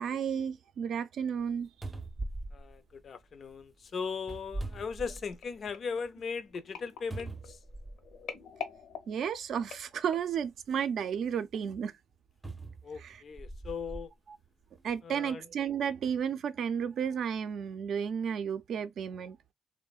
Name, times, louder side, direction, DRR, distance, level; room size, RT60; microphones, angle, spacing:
voice 1, 0.0-1.7 9.1-11.9 13.0-13.1 14.8-19.4, right 7 dB, 65° right, 0.5 m, -32 dB
sound 1, 1.4-1.5 1.8-3.5 4.2-5.6 6.0-6.1 7.1-8.2 9.2-9.3 12.4-14.1 14.8-14.9, right 2 dB, 15° right, 0.6 m, -41 dB
voice 2, 2.5-7.6 12.8-14.1 15.0-15.5, left 5 dB, 50° left, 0.4 m, -38 dB
sound 2, 5.4-10.4 11.0-11.3 11.5-11.6, left 7 dB, 75° left, 0.8 m, -46 dB
2.9 x 2.1 x 2.3 m
cardioid pair, 90°, 0 cm